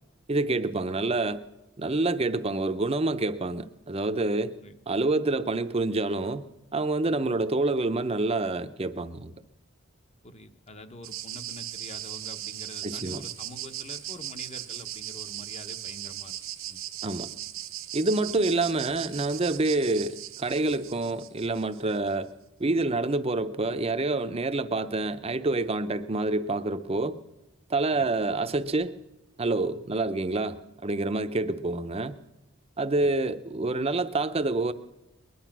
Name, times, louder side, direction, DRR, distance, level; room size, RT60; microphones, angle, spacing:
voice 1, 0.3-1.4 1.8-4.5 4.9-9.3 12.8-13.2 17.0-17.3 17.9-22.3 22.6-27.2 27.7-28.9 29.4-32.2 32.8-34.7, right 2 dB, 30° right, 0.6 m, -27 dB
voice 2, 10.2-16.4 16.7-17.1 18.2-18.4 27.9-28.2 33.0-33.1, left 1 dB, 30° left, 1.0 m, -46 dB
sound 1, 11.0-22.0, right 13 dB, 80° right, 0.8 m, -38 dB
20.5 x 11.0 x 6.0 m
head